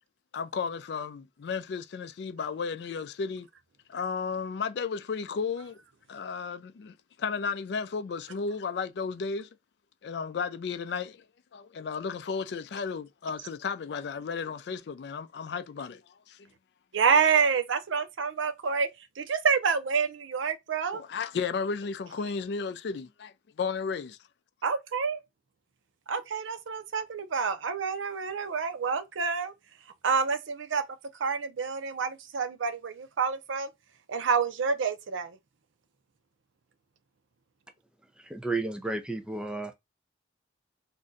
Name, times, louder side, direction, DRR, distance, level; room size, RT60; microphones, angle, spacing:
voice 1, 0.3-3.5 3.9-5.8 6.1-9.5 10.0-11.2 11.5-16.0 16.3-16.5 20.9-24.2, left 5 dB, 60° left, 0.3 m, -34 dB
voice 2, 16.9-18.9 19.2-21.0 24.6-25.2 26.1-29.5 30.0-30.8 31.2-33.7 34.1-35.4, right 5 dB, 85° right, 0.5 m, -28 dB
voice 3, 38.2-39.7, right 3 dB, 5° right, 0.4 m, -32 dB
2.6 x 2.2 x 3.8 m
head